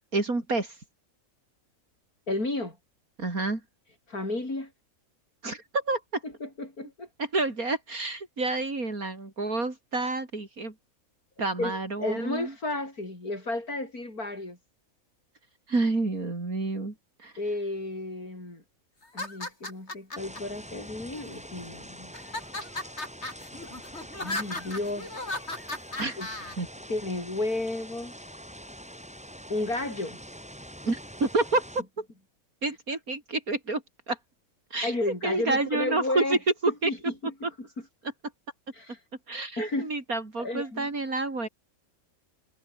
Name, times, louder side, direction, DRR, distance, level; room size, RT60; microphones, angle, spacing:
voice 1, 0.1-0.8 3.2-3.6 5.4-6.2 7.2-10.7 11.4-12.5 15.7-16.9 17.2-17.3 26.0-26.2 26.6-26.7 30.8-31.7 32.0-32.1 32.6-34.2 34.7-34.9 35.2-36.4 36.6-36.9 39.3-41.5, right 3 dB, 75° right, 4.6 m, -29 dB
voice 2, 2.3-2.8 4.1-4.7 6.2-7.1 11.6-14.6 17.4-18.6 19.1-22.1 22.6-22.7 24.2-25.3 26.2-26.3 26.9-28.1 29.5-30.2 34.8-36.4 36.7-37.7 38.7-39.0 39.6-39.9 40.4-40.9, left 2 dB, 90° left, 7.2 m, -32 dB
sound 1, 19.0-20.4 21.1-21.7 22.1-26.5, left 2 dB, 50° left, 5.3 m, -36 dB
sound 2, 20.2-31.8, equal, 5° right, 5.9 m, -45 dB
omnidirectional pair, 1.5 m